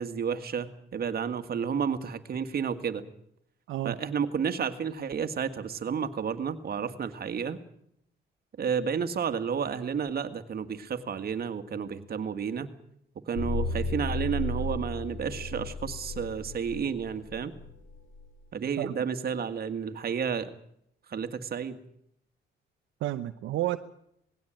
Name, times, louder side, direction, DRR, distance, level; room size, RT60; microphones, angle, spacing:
voice 1, 0.0-3.0 3.8-7.6 8.6-12.7 13.3-17.5 18.5-20.5 21.1-21.8, right 7 dB, 50° right, 8 dB, 1.9 m, -31 dB
sound 1, 13.3-18.3, left 2 dB, 75° left, 4.0 m, -34 dB
voice 2, 23.0-23.8, right 15 dB, 85° right, 8 dB, 0.9 m, -31 dB
19.5 x 16.5 x 9.1 m, 0.73 s
cardioid pair, 90°, 20 cm